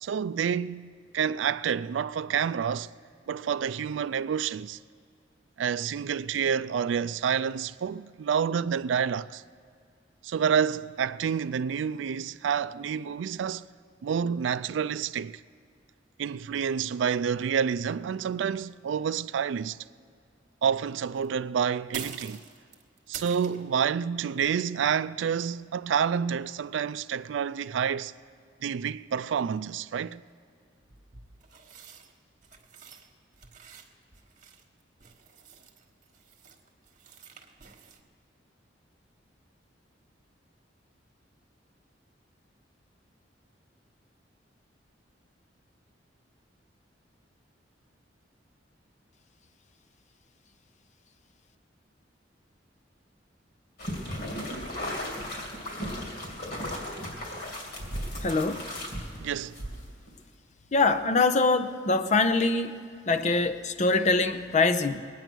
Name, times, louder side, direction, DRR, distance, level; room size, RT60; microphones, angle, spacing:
voice 1, 0.0-2.9 3.3-4.8 5.6-9.4 10.2-13.7 14.0-15.4 16.2-19.8 20.6-22.4 23.1-28.1 28.6-30.2 59.2-59.6, right 7 dB, 80° right, 0.3 m, -28 dB
sound 1, 21.1-21.3 21.9-23.7 29.7-29.8 30.8-33.1 33.3-38.0, right 7 dB, 45° right, 1.3 m, -46 dB
sound 2, 53.8-60.1, equal, 60° left, 2.5 m, -36 dB
voice 2, 58.2-58.7 60.7-62.8 63.1-65.0, left 3 dB, 40° left, 0.6 m, -24 dB
21.0 x 9.2 x 6.1 m
head